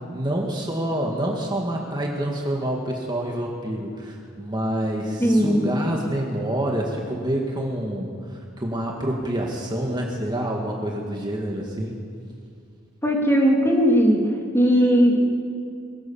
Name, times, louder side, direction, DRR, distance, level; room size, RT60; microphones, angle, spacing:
voice 1, 0.1-12.0, right 1 dB, 20° right, -1 dB, 2.0 m, -27 dB
voice 2, 5.2-5.7 13.0-14.2 14.5-15.3, equal, 15° left, -1 dB, 3.4 m, -18 dB
23.0 x 17.5 x 7.1 m, 2.3 s
head